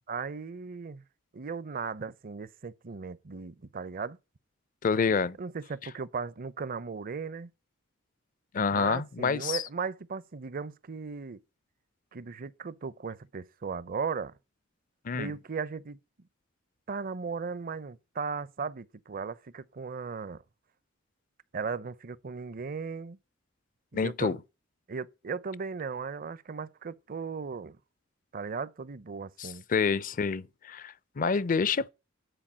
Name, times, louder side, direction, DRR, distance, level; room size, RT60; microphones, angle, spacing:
voice 1, 0.1-1.0 1.3-4.2 5.4-7.5 8.7-11.4 12.1-14.3 15.1-16.0 16.9-20.4 21.5-23.2 23.9-24.4 24.9-27.8 28.3-29.6, right 5 dB, 45° right, 0.5 m, -37 dB
voice 2, 4.8-5.4 8.5-9.6 15.0-15.3 23.9-24.4 29.4-31.9, left 5 dB, 45° left, 0.5 m, -28 dB
10.0 x 4.8 x 7.2 m
head